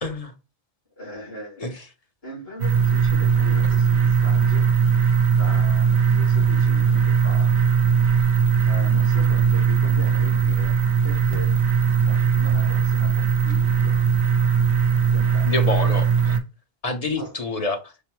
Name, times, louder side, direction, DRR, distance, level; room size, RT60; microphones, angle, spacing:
voice 1, 0.0-0.3 1.6-1.7 15.4-16.4 16.8-17.9, left 2 dB, 40° left, 0.8 m, -27 dB
voice 2, 1.0-1.7 2.2-4.7 5.3-7.5 8.6-11.6 12.0-14.0 15.1-15.8 17.2-17.3, left 2 dB, 65° left, 3.2 m, -40 dB
sound 1, 2.6-16.4, right 6 dB, 85° right, 1.0 m, -19 dB
5.2 x 2.0 x 4.5 m
omnidirectional pair, 1.1 m